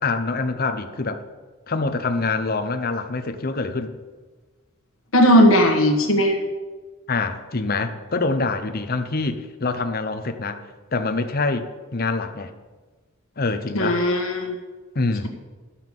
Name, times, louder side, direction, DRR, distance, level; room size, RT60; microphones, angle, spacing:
voice 1, 0.0-1.2 1.7-3.9 7.1-10.6 10.9-12.5 13.4-14.0 14.9-15.3, left 3 dB, 45° left, 8 dB, 0.9 m, -25 dB
voice 2, 5.1-6.4 13.7-14.5, equal, 70° left, 2 dB, 1.5 m, -17 dB
12.5 x 5.8 x 7.5 m, 1.3 s
head